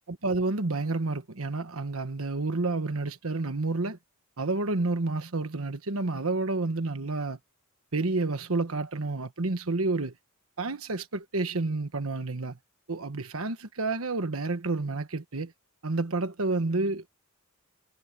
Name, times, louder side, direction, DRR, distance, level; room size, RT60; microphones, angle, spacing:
voice 1, 0.1-4.0 4.4-7.4 7.9-10.1 10.6-12.6 12.9-15.5 15.8-17.1, right 3 dB, 85° right, 1.3 m, -29 dB
head